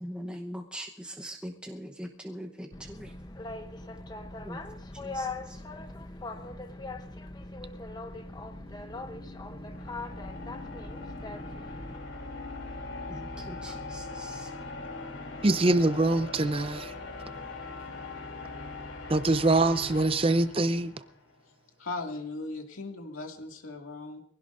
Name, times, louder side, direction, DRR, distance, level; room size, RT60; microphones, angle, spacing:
voice 1, 0.0-3.1 4.4-4.6 5.0-5.3 13.1-14.5, equal, 5° right, 0.9 m, -41 dB
Boat Water vehicle, 2.7-12.0, left 2 dB, 20° left, 0.8 m, -40 dB
sound 1, 8.1-21.3, left 2 dB, 70° left, 3.0 m, -41 dB
voice 2, 15.4-16.9 19.1-20.9, right 2 dB, 25° right, 0.5 m, -24 dB
voice 3, 21.8-24.2, left 3 dB, 90° left, 2.3 m, -38 dB
23.5 x 16.5 x 2.6 m
head